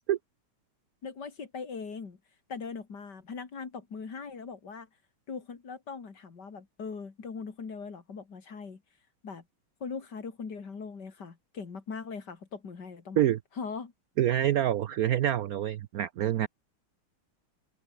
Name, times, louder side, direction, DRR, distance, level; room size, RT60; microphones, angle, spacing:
voice 1, 1.0-2.2 2.5-4.9 5.3-8.8 9.2-9.4 9.8-13.2 13.6-13.9, left 5 dB, 50° left, 3.1 m, -40 dB
voice 2, 14.2-16.5, right 11 dB, 80° right, 0.8 m, -26 dB
open air
omnidirectional pair, 2.3 m